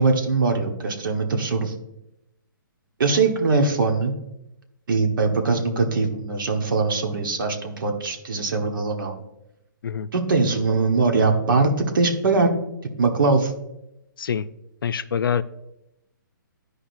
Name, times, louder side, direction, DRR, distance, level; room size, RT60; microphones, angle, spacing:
voice 1, 0.0-1.7 3.0-4.1 4.9-9.2 10.1-12.5 13.0-13.5, right 3 dB, 70° right, 4 dB, 1.3 m, -21 dB
voice 2, 14.2-14.5 14.8-15.4, left 7 dB, 90° left, 12 dB, 0.5 m, -25 dB
13.0 x 4.9 x 2.6 m, 0.88 s
hypercardioid pair, 160°, 11 cm